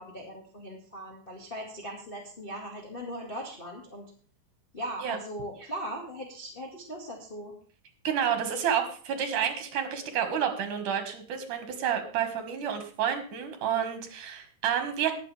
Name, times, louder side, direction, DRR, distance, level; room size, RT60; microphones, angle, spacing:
voice 1, 0.0-4.1 4.7-7.5, equal, 20° left, -2 dB, 1.6 m, -39 dB
voice 2, 8.0-15.1, right 8 dB, 65° right, 6 dB, 3.3 m, -29 dB
20.0 x 7.9 x 3.5 m, 0.41 s
omnidirectional pair, 4.1 m